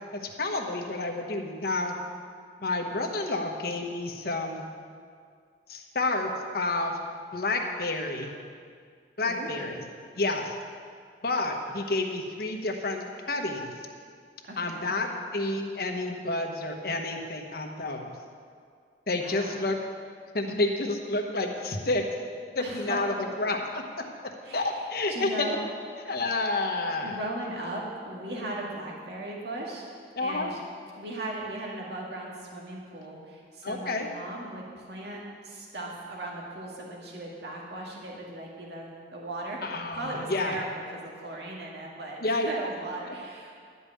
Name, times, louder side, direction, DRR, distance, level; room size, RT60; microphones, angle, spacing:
voice 1, 0.4-1.9 2.6-4.7 5.7-7.0 7.3-8.3 9.2-9.8 10.2-10.5 11.2-13.7 14.6-18.1 19.1-19.8 20.3-22.0 22.5-23.8 24.5-25.6 26.1-27.2 30.2-30.5 33.6-34.1 39.6-40.5 42.2-42.7, left 2 dB, 55° left, 3 dB, 1.1 m, -29 dB
voice 2, 9.2-9.8 14.4-14.9 19.2-19.6 22.6-23.2 24.4-25.6 27.0-30.6 30.9-43.5, right 1 dB, 70° right, -2 dB, 1.9 m, -38 dB
12.0 x 5.5 x 8.5 m, 2.1 s
head